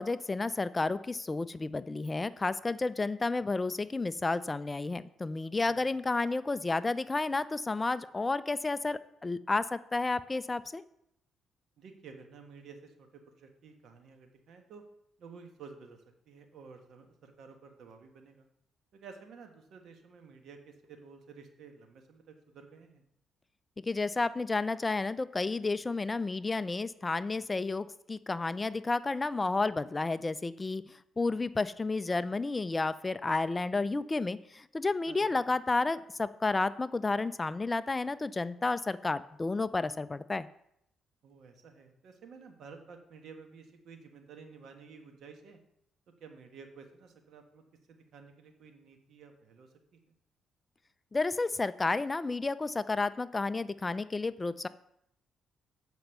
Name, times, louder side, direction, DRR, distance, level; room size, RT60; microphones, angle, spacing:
voice 1, 0.0-10.8 23.9-30.8 31.2-40.5 51.1-54.7, left 3 dB, 25° left, 15 dB, 0.4 m, -31 dB
voice 2, 5.6-5.9 11.8-14.8 15.2-18.5 18.9-23.0 35.1-35.4 41.2-45.6 46.2-50.0, right 5 dB, 70° right, 5 dB, 1.4 m, -52 dB
7.9 x 5.3 x 6.8 m, 0.74 s
cardioid pair, 90°, 0 cm